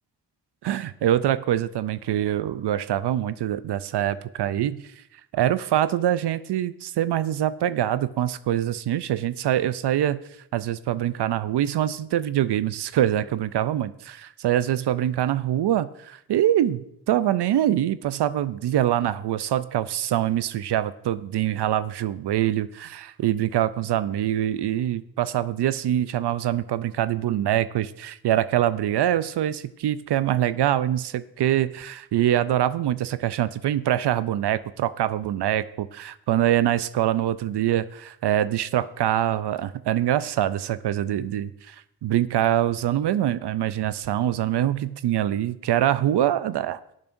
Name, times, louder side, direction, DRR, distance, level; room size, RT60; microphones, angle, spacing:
voice 1, 0.6-4.8 5.3-10.2 10.5-46.8, right 12 dB, 70° right, 15 dB, 0.5 m, -24 dB
19.0 x 7.2 x 2.6 m, 0.76 s
cardioid pair, 55°, 42 cm